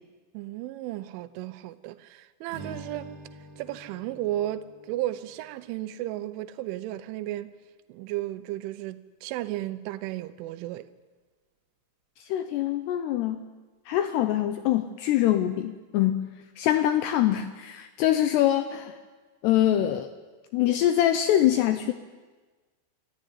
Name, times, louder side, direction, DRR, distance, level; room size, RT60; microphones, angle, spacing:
voice 1, 0.3-3.1 3.6-7.5 7.9-10.9, right 14 dB, 80° right, 3.2 m, -34 dB
Strum, 2.5-6.9, right 2 dB, 60° right, 3.5 m, -47 dB
voice 2, 12.2-13.4 13.9-16.3 16.6-19.0 19.4-20.1 20.5-21.9, left 12 dB, 85° left, 2.4 m, -24 dB
25.5 x 14.0 x 9.6 m
omnidirectional pair, 5.8 m